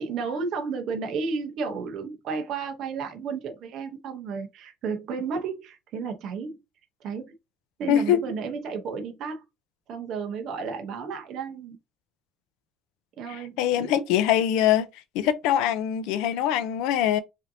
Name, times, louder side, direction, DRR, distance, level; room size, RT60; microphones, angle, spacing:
voice 1, 0.0-6.6 7.0-7.3 7.8-9.4 9.9-11.8 13.2-13.9, right 5 dB, 55° right, 0.9 m, -32 dB
voice 2, 7.9-8.2 13.3-14.9 15.1-17.2, left 10 dB, 85° left, 0.5 m, -23 dB
5.0 x 2.7 x 2.7 m
cardioid pair, 150°, 0 cm